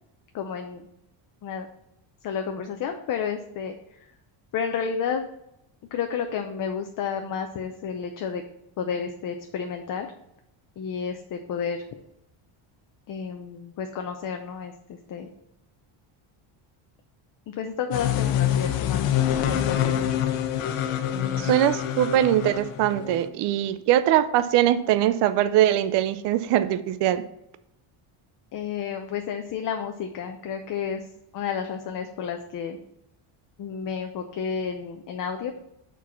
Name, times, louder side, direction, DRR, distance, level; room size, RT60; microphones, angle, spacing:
voice 1, 0.3-0.9 1.4-1.7 2.2-4.0 4.5-5.2 5.9-8.4 8.8-10.1 10.8-11.8 13.1-15.3 17.5-19.1 19.5-20.0 21.1-21.5 28.5-31.0 31.3-32.8 33.6-35.5, left 7 dB, 40° left, 5 dB, 0.6 m, -31 dB
sound 1, 17.9-23.3, left 10 dB, 80° left, 0.9 m, -26 dB
voice 2, 21.4-27.2, right 12 dB, 55° right, 12 dB, 0.5 m, -22 dB
6.1 x 4.7 x 5.7 m, 0.82 s
cardioid pair, 170°, 50 cm